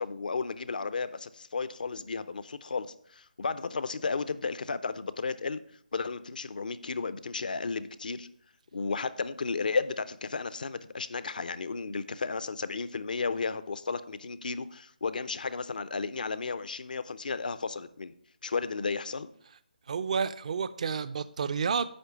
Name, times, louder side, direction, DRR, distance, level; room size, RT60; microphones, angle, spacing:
voice 1, 0.0-5.6 5.9-8.3 8.7-18.1 18.4-19.3, left 4 dB, 65° left, 0.5 m, -33 dB
voice 2, 19.9-21.9, right 6 dB, 50° right, 0.4 m, -30 dB
9.6 x 3.2 x 6.9 m
figure-of-eight pair, 150°, 5 cm